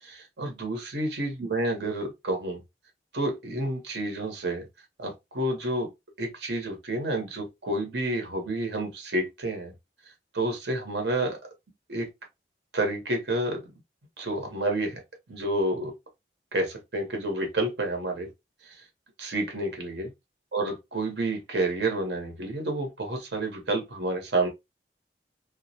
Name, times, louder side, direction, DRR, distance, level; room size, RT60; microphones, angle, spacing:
voice 1, 0.0-2.6 3.1-4.7 5.0-5.9 6.2-9.7 10.3-11.4 11.9-12.1 12.7-13.6 14.2-15.0 15.3-15.9 16.5-18.3 18.6-18.8 19.2-20.1 20.5-24.5, right 2 dB, 80° right, 0.8 m, -29 dB
2.2 x 2.0 x 2.6 m
head